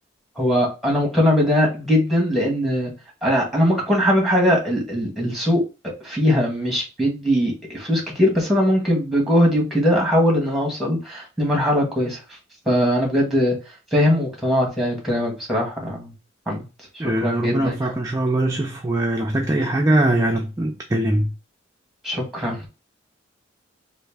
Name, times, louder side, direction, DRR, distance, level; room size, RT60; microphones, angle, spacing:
voice 1, 0.4-2.9 3.2-12.2 12.6-13.5 13.9-16.1 16.5-16.6 16.9-17.9 22.0-22.7, equal, ahead, 1.4 m, -21 dB
voice 2, 17.0-21.3, right 1 dB, 15° right, 0.4 m, -21 dB
3.2 x 2.5 x 3.4 m
head